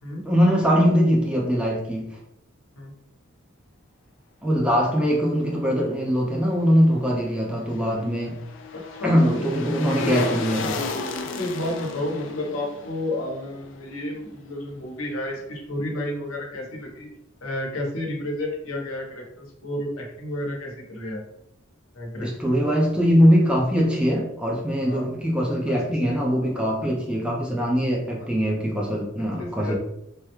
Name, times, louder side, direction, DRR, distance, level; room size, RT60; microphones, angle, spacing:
voice 1, 0.2-2.1 4.4-8.4 9.0-10.8 22.2-29.7, equal, 5° right, -2 dB, 0.5 m, -22 dB
sound 1, 7.3-14.5 14.8-14.9, left 4 dB, 60° left, 0.4 m, -34 dB
voice 2, 11.4-17.1 17.4-21.2 21.9-22.5 24.8-25.1 25.5-26.2 26.5-26.9 28.2-28.3 29.4-29.7, left 1 dB, 90° left, -1 dB, 0.9 m, -31 dB
3.4 x 2.1 x 3.0 m, 0.80 s
head